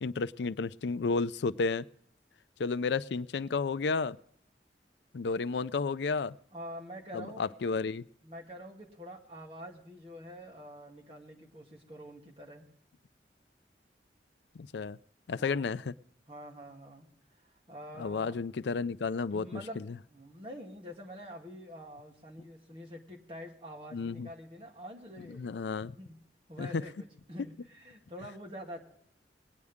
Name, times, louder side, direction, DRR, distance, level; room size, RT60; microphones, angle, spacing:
voice 1, 0.0-1.8 2.6-4.2 5.1-6.3 7.1-8.0 14.6-15.0 15.3-15.9 18.0-19.9 23.9-24.3 25.4-25.9 26.6-26.8, left 4 dB, 80° left, 15 dB, 0.5 m, -32 dB
voice 2, 6.5-7.4 8.2-12.7 15.3-15.7 16.3-17.1 17.5-18.3 19.3-19.8 20.1-25.5 26.0-26.2 26.5-28.8, equal, 30° right, -1 dB, 2.4 m, -46 dB
21.5 x 9.5 x 3.6 m, 0.68 s
head